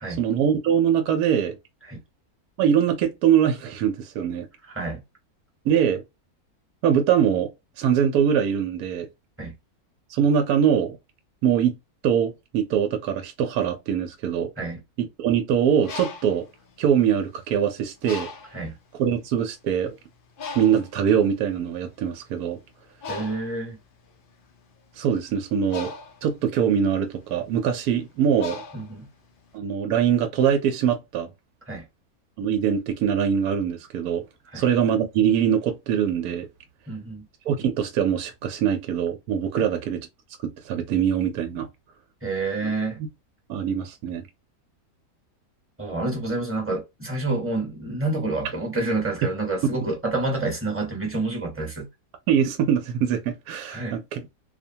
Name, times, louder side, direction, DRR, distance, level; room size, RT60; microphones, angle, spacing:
voice 1, 0.2-1.6 2.6-4.5 5.6-6.0 6.8-7.5 7.8-9.1 10.1-11.0 11.4-11.7 12.0-14.5 15.0-16.4 16.8-18.3 19.0-19.9 20.6-22.6 25.0-25.9 26.2-28.6 29.5-31.3 32.4-34.2 34.5-36.5 37.5-40.1 40.4-41.7 43.5-44.3 52.3-54.3, right 8 dB, 80° right, 1.1 m, -23 dB
voice 2, 4.6-5.0 9.4-9.5 14.6-14.8 18.5-18.7 23.1-23.8 28.7-29.1 31.7-31.8 34.5-34.6 36.9-37.3 42.2-43.0 45.8-51.9 53.7-54.0, right 2 dB, 10° right, 0.9 m, -28 dB
Bird, 15.6-17.5 18.0-18.7 19.4-19.5 19.8-29.5, left 4 dB, 75° left, 0.4 m, -39 dB
2.6 x 2.1 x 2.7 m
omnidirectional pair, 1.6 m